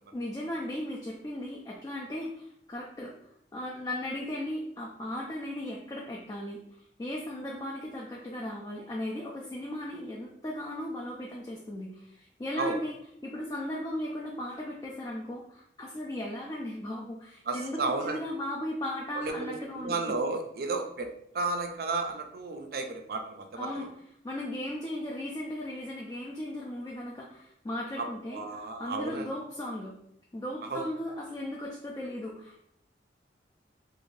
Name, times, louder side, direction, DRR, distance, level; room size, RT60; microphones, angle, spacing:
voice 1, 0.1-3.1 3.5-6.6 7.0-13.0 13.2-20.0 23.6-23.9 24.2-29.9 30.3-32.6, left 1 dB, 20° left, -2 dB, 0.3 m, -37 dB
voice 2, 17.5-18.2 19.2-21.1 21.3-23.9 28.0-28.1 28.3-29.3 30.7-30.8, right 3 dB, 55° right, 5 dB, 0.4 m, -33 dB
2.6 x 2.4 x 3.1 m, 0.71 s
head